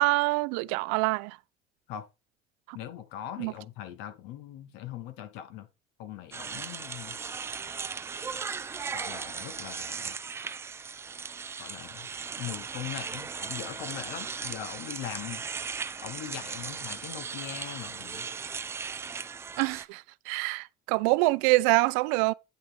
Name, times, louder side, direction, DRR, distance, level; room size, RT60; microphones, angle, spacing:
voice 1, 0.0-1.4 3.4-3.5 19.6-22.3, right 23 dB, 85° right, 0.4 m, -25 dB
voice 2, 2.7-5.7 6.0-7.2 8.9-10.1 11.6-12.1 12.4-15.4 16.0-18.3, left 11 dB, 70° left, 1.6 m, -41 dB
sound 1, 6.3-19.8, right 5 dB, 15° right, 0.4 m, -37 dB
9.3 x 5.9 x 3.6 m
cardioid pair, 160°, 18 cm